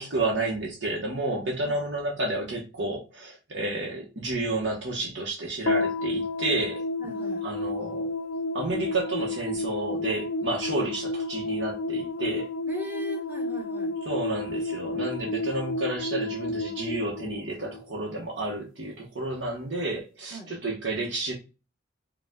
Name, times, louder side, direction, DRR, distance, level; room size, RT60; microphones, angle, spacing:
voice 1, 0.0-6.8 7.4-8.1 8.5-12.5 14.1-21.3, right 2 dB, 65° right, 1.0 m, -31 dB
sound 1, 5.7-18.2, left 2 dB, 90° left, 0.5 m, -31 dB
voice 2, 7.0-7.5 12.7-14.0 20.3-20.5, equal, 10° right, 1.0 m, -40 dB
4.8 x 2.3 x 3.6 m
head